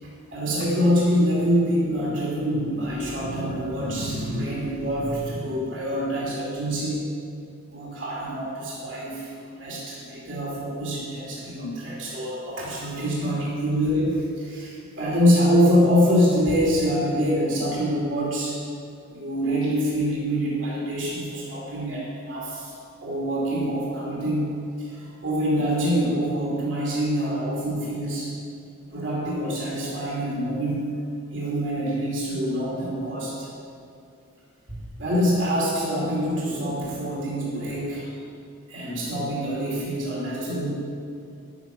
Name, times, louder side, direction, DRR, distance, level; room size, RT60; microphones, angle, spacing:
voice 1, 0.0-7.0 7.7-18.6 19.1-22.7 23.0-28.3 28.9-30.9 31.3-33.5 34.7-38.1 38.7-40.9, equal, 65° right, -5 dB, 2.7 m, -25 dB
10.5 x 9.5 x 6.0 m, 2.4 s
head